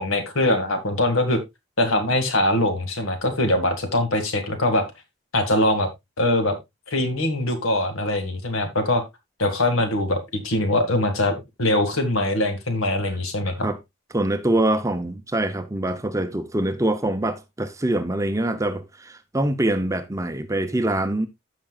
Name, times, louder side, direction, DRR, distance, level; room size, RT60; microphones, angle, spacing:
voice 1, 0.0-1.4 1.8-4.8 5.3-5.9 6.2-6.6 6.9-9.0 9.4-13.7, left 1 dB, 75° left, 2.0 m, -22 dB
voice 2, 14.1-21.3, right 1 dB, 15° right, 0.6 m, -24 dB
14.5 x 5.9 x 2.3 m
head